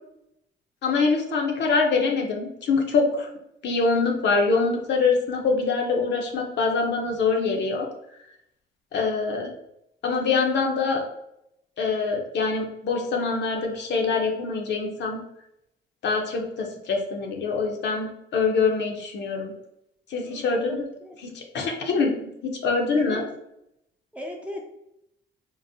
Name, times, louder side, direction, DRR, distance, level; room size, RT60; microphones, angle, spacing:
voice 1, 0.8-3.3 3.6-7.9 8.9-9.5 10.0-11.0 11.8-15.2 16.0-19.5 20.1-20.8 21.2-23.2, left 4 dB, 60° left, 2 dB, 0.7 m, -24 dB
voice 2, 20.2-21.2 23.0-23.2 24.1-24.6, left 1 dB, 5° right, 0 dB, 0.5 m, -37 dB
3.7 x 2.0 x 2.6 m, 0.79 s
cardioid pair, 90°, 20 cm